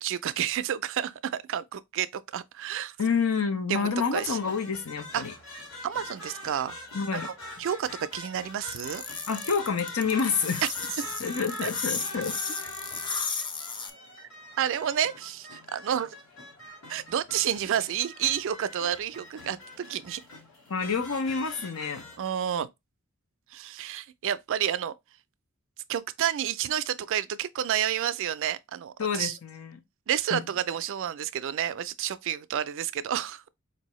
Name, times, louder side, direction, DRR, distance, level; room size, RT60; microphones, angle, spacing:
voice 1, 0.0-3.0 3.7-4.4 5.1-5.2 5.8-6.8 7.1-7.3 7.6-9.0 11.0-11.1 11.6-11.7 14.2-14.3 14.6-16.2 16.9-20.2 22.2-22.7 23.5-24.9 25.9-29.4 30.1-33.5, right 10 dB, 60° right, 0.4 m, -30 dB
voice 2, 3.0-5.3 6.9-7.3 9.3-10.6 11.2-12.7 20.7-22.0 29.0-29.8 30.3-30.4, left 5 dB, 90° left, 0.7 m, -28 dB
sound 1, 4.1-22.3, left 1 dB, 70° left, 1.4 m, -44 dB
sound 2, 8.7-13.9, left 5 dB, 20° left, 0.4 m, -34 dB
4.4 x 2.7 x 3.0 m
head